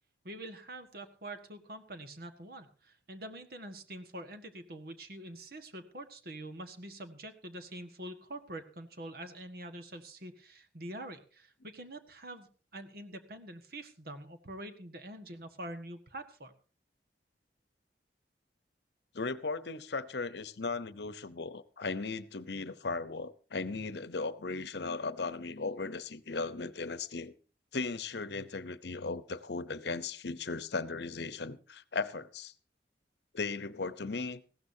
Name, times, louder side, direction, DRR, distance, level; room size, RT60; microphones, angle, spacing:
voice 1, 0.2-12.5 12.7-16.5, right 1 dB, 55° right, 1.6 m, -45 dB
voice 2, 19.1-27.3 27.7-32.5 33.3-34.4, left 4 dB, 70° left, 0.8 m, -37 dB
19.5 x 15.5 x 2.8 m
head